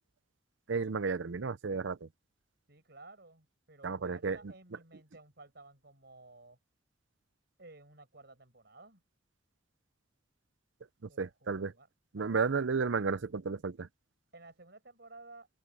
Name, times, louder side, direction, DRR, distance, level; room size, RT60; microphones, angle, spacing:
voice 1, 0.7-2.1 3.8-4.5 11.0-11.7 12.1-13.9, right 5 dB, 85° right, 0.6 m, -33 dB
voice 2, 2.7-6.6 7.6-9.0 11.1-11.9 12.1-12.5 14.3-15.5, right 2 dB, 60° right, 6.9 m, -55 dB
head